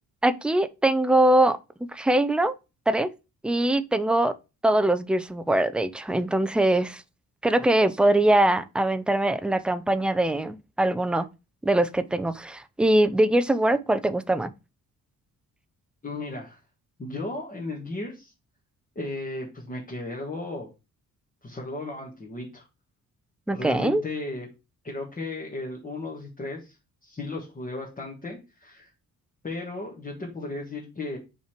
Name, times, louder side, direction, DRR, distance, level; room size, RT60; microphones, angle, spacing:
voice 1, 0.2-1.6 1.9-2.5 2.9-3.1 3.4-4.3 4.6-7.0 7.4-11.3 11.6-14.5 23.5-24.0, right 1 dB, 5° right, 0.4 m, -22 dB
voice 2, 16.0-16.6 17.0-18.3 18.9-20.7 21.4-22.7 23.5-24.5 24.8-26.8 27.0-28.9 29.4-31.2, left 2 dB, 25° left, 1.6 m, -35 dB
5.5 x 4.5 x 5.0 m
wide cardioid pair, 160°, 34 cm